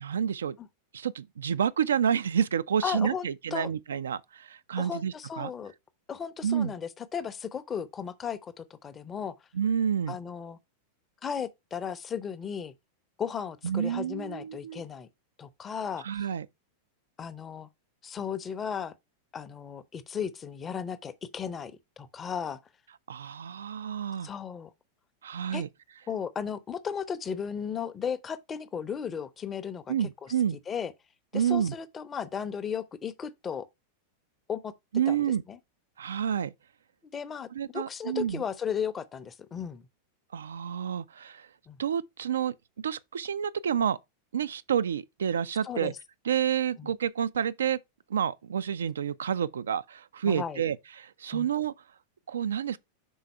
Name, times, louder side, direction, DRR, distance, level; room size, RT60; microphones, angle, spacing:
voice 1, 0.0-0.6 0.9-5.5 6.4-6.7 9.5-10.2 13.6-14.8 16.0-16.5 23.1-24.3 25.2-25.7 29.9-30.6 31.3-31.7 34.9-35.4 36.0-36.5 37.6-38.4 40.3-41.5 41.8-44.0 44.3-45.9 46.3-47.8 48.1-51.7 52.3-52.8, right 8 dB, 65° right, 0.3 m, -29 dB
voice 2, 2.8-3.7 4.8-5.7 6.1-9.3 10.1-10.6 11.2-12.7 13.2-15.1 15.4-16.0 17.2-17.7 18.0-18.9 19.3-22.6 24.2-24.7 25.5-25.6 26.1-30.3 30.7-30.9 31.3-33.7 34.5-34.7 35.1-35.2 35.5-35.6 37.1-39.8 41.7-41.8 45.6-46.0 46.8-46.9 50.2-50.6 51.3-51.5, left 7 dB, 20° left, 0.6 m, -35 dB
5.4 x 4.0 x 4.5 m
figure-of-eight pair, 90°, 0 cm